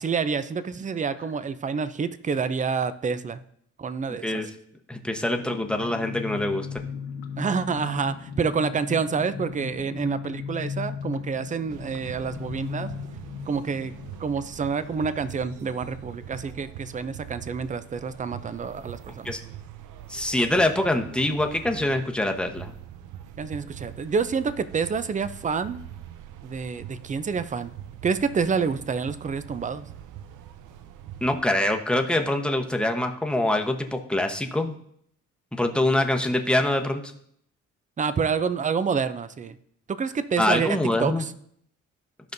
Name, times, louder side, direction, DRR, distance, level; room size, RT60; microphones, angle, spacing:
voice 1, 0.0-3.4 3.8-4.4 7.4-12.9 13.5-13.9 14.2-19.3 23.4-25.8 26.4-27.7 28.0-29.8 38.0-39.6 39.9-41.3, right 5 dB, 25° right, 13 dB, 0.5 m, -28 dB
voice 2, 4.9-6.7 19.2-19.4 20.1-22.7 31.2-34.7 35.5-37.1 40.4-41.2, left 1 dB, 5° left, 3 dB, 1.0 m, -24 dB
sound 1, 5.3-17.6 17.9-18.0 18.3-18.6, left 6 dB, 85° left, 1.4 m, -38 dB
sound 2, 11.7-31.4, right 10 dB, 85° right, 0.6 m, -43 dB
14.5 x 5.2 x 2.7 m, 0.68 s
cardioid pair, 90°, 30 cm